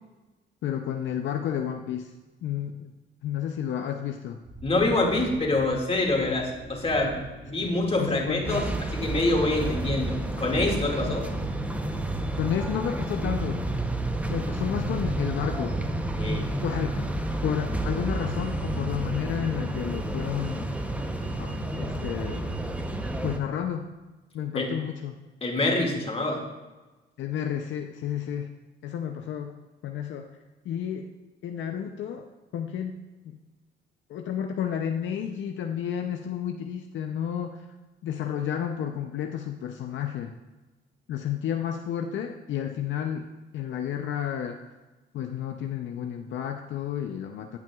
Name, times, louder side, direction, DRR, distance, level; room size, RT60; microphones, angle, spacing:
voice 1, 0.6-2.1 2.4-2.9 3.2-4.4 7.6-8.6 11.1-11.2 12.4-13.6 14.3-15.8 16.6-17.0 17.4-20.7 21.4-22.5 23.2-23.9 24.3-25.2 27.2-28.5 28.8-29.6 29.8-30.3 30.6-31.1 31.4-32.3 32.5-33.0 33.2-33.4 34.1-37.7 38.0-40.3 41.1-43.3 43.5-44.6 45.1-47.6, left 9 dB, 70° left, 4 dB, 0.6 m, -31 dB
sound 1, 4.4-10.1, right 2 dB, 60° right, 2.6 m, -44 dB
voice 2, 4.6-7.2 7.5-11.3 16.2-16.5 24.5-24.7 25.4-26.4, left 2 dB, 30° left, 0 dB, 2.1 m, -26 dB
sound 2, 6.5-22.7, right 4 dB, 85° right, 1.0 m, -45 dB
sound 3, 8.4-23.4, right 1 dB, 5° right, 0.7 m, -30 dB
16.0 x 5.9 x 2.4 m, 1.2 s
cardioid pair, 90°, 20 cm